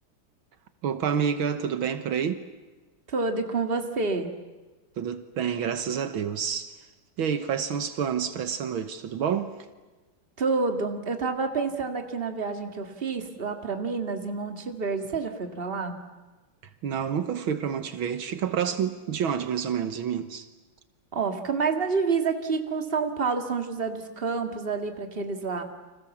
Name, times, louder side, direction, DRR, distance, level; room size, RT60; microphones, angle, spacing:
voice 1, 0.8-2.4 5.0-6.7 7.2-9.5 16.8-20.5, right 7 dB, 75° right, 2.0 m, -28 dB
voice 2, 3.1-4.3 10.4-15.9 21.1-25.6, right 4 dB, 30° right, 2.1 m, -28 dB
30.0 x 26.0 x 7.2 m
omnidirectional pair, 2.3 m